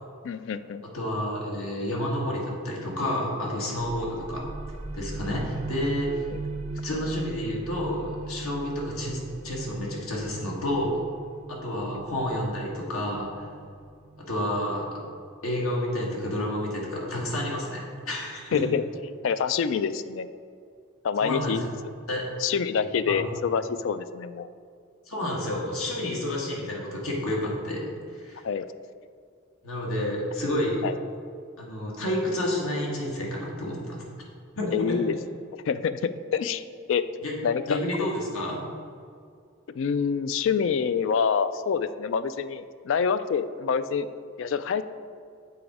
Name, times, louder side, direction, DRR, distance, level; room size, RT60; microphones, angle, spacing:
voice 1, 0.2-0.8 6.3-6.4 18.5-18.8 19.2-20.3 21.0-21.7 22.4-24.5 28.4-28.6 30.8-30.9 34.7-35.2 35.7-36.6 36.9-37.0 37.4-37.8 39.7-44.1 44.4-44.8, left 6 dB, 60° left, 13 dB, 0.3 m, -26 dB
voice 2, 0.8-4.4 4.9-6.3 6.8-11.0 11.5-13.5 14.3-15.0 15.4-18.6 21.2-21.6 22.1-22.2 23.1-23.2 25.1-28.4 29.6-30.8 31.6-34.0 34.6-35.0 37.2-37.3 37.7-38.6, left 1 dB, 85° left, -2 dB, 1.6 m, -30 dB
sound 1, 3.8-15.2, right 2 dB, 30° right, 0.7 m, -39 dB
7.0 x 4.2 x 4.8 m, 2.2 s
head